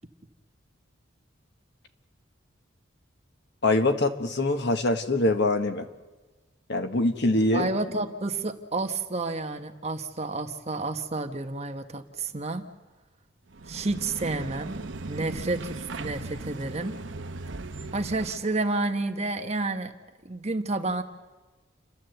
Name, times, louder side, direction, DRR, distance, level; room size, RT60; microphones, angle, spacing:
voice 1, 3.6-5.9 6.7-7.7, left 2 dB, 55° left, 7 dB, 1.4 m, -24 dB
voice 2, 7.5-12.6 13.7-14.7 15.1-16.9 17.9-19.9 20.2-21.0, right 2 dB, 30° right, 6 dB, 1.2 m, -30 dB
sound 1, 13.5-18.6, right 3 dB, 65° right, 0.9 m, -38 dB
29.5 x 12.0 x 7.9 m, 1.2 s
head